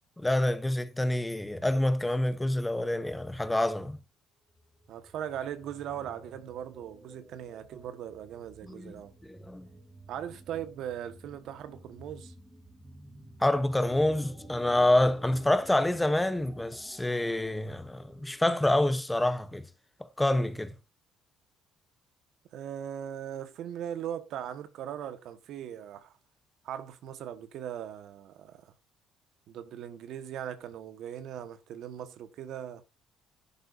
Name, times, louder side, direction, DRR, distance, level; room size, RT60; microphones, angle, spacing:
voice 1, 0.2-4.0 8.7-8.9 9.2-9.7 13.4-19.6 20.0-20.7, left 1 dB, 10° left, 0.9 m, -27 dB
sound 1, 4.5-18.6, right 1 dB, 15° right, 3.1 m, -52 dB
voice 2, 4.9-9.1 10.1-12.3 22.5-26.1 26.6-28.7 29.5-32.8, right 10 dB, 65° right, 1.4 m, -39 dB
11.0 x 11.0 x 2.7 m
cardioid pair, 110°, 0 cm